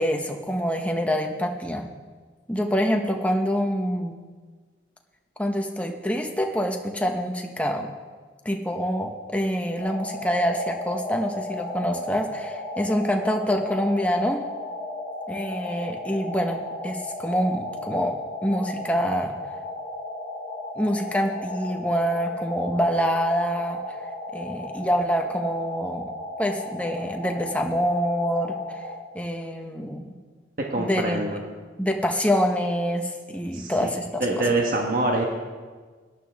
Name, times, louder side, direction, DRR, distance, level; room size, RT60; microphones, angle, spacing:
voice 1, 0.0-1.9 2.5-4.2 5.4-7.9 8.4-14.4 15.3-19.3 20.8-23.8 24.3-26.1 26.4-28.8 29.1-30.1 30.8-31.4 31.8-34.5, equal, 5° left, 2 dB, 0.9 m, -26 dB
sound 1, 9.8-28.9, left 2 dB, 80° right, 4.4 m, -35 dB
voice 2, 30.7-31.4 33.5-33.9 34.2-35.3, right 2 dB, 45° right, 0 dB, 1.3 m, -25 dB
17.5 x 11.5 x 3.5 m, 1.5 s
head